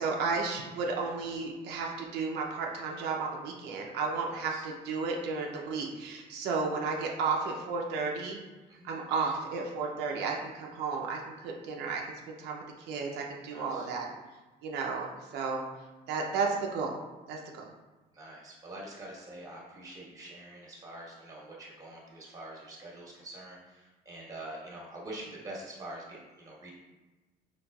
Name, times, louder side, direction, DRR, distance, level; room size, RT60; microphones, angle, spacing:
voice 1, 0.0-8.4 8.8-12.0 12.3-14.1 14.6-15.1 15.3-15.6 16.1-17.0 17.3-17.6, right 4 dB, 85° right, 0 dB, 0.5 m, -33 dB
voice 2, 4.3-4.7 8.7-9.0 13.5-13.9 18.1-26.7, right 1 dB, 20° right, -4 dB, 1.2 m, -45 dB
3.9 x 3.2 x 2.3 m, 1.2 s
cardioid pair, 110°, 17 cm